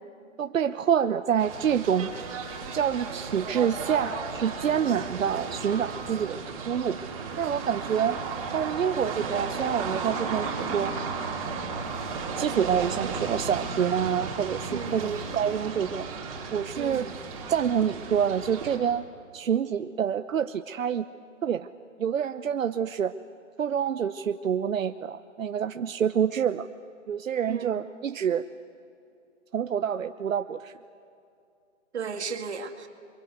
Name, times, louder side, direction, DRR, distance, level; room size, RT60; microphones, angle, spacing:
voice 1, 0.4-2.1 2.7-6.4 6.7-7.0 7.4-8.2 8.5-10.9 11.4-11.8 12.4-16.1 16.5-17.1 17.5-19.0 19.3-21.0 21.4-21.7 22.0-23.1 23.6-26.7 27.1-28.4 29.5-30.7, right 8 dB, 90° right, 9 dB, 1.0 m, -27 dB
sound 1, 1.4-18.8, right 4 dB, 25° right, 3.4 m, -34 dB
voice 2, 14.7-15.2 16.8-17.2 27.5-27.8 31.9-32.9, right 6 dB, 60° right, 5 dB, 2.3 m, -35 dB
29.0 x 24.0 x 8.2 m, 2.5 s
hypercardioid pair, 180°, 38 cm